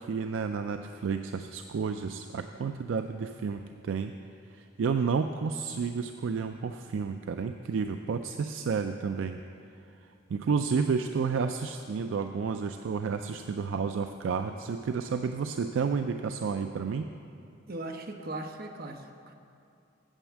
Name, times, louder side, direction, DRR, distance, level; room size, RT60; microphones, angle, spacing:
voice 1, 0.0-4.1 4.5-9.4 10.0-17.1, right 5 dB, 70° right, 7 dB, 0.4 m, -31 dB
voice 2, 17.7-19.3, right 2 dB, 50° right, 4 dB, 0.8 m, -39 dB
9.0 x 7.1 x 7.3 m, 2.5 s
head